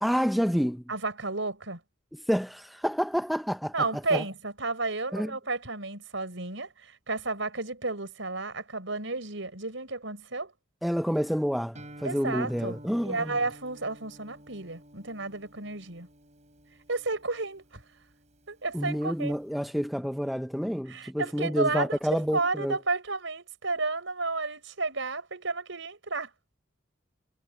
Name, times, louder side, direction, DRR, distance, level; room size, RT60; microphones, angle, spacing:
voice 1, 0.0-0.8 2.3-3.7 4.1-4.2 5.1-5.3 10.8-13.3 18.7-22.8, equal, ahead, 0.5 m, -28 dB
voice 2, 0.9-1.8 3.7-10.5 12.0-16.1 16.9-17.8 18.5-19.4 20.9-26.3, right 3 dB, 70° right, 5.0 m, -32 dB
Guitar, 11.7-19.5, right 1 dB, 35° right, 5.5 m, -51 dB
head